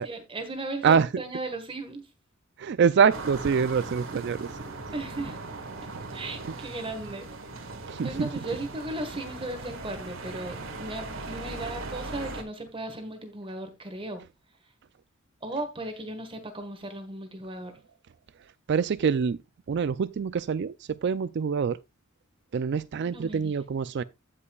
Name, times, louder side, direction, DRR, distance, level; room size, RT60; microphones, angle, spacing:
voice 1, 0.0-2.0 4.9-5.6 6.1-7.3 8.0-14.2 15.4-17.7 23.0-23.5, right 2 dB, 25° right, 1.5 m, -36 dB
voice 2, 0.8-1.2 2.6-4.5 7.9-8.3 18.7-19.4 19.7-21.8 22.5-24.0, right 6 dB, 55° right, 0.4 m, -25 dB
sound 1, 3.1-12.4, right 3 dB, 75° right, 1.7 m, -39 dB
16.5 x 5.5 x 2.3 m
head